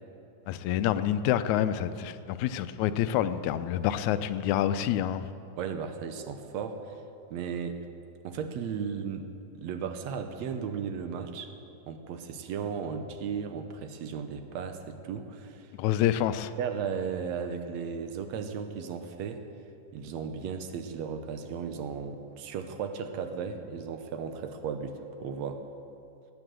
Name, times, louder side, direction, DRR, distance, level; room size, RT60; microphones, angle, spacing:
voice 1, 0.5-5.3 15.7-16.5, left 11 dB, 85° left, 12 dB, 2.0 m, -27 dB
voice 2, 5.6-7.0 7.3-7.9 8.2-11.5 11.9-15.7 16.6-19.4 19.9-25.7, right 6 dB, 75° right, 7 dB, 2.0 m, -35 dB
18.0 x 8.8 x 7.6 m, 2.6 s
omnidirectional pair, 3.3 m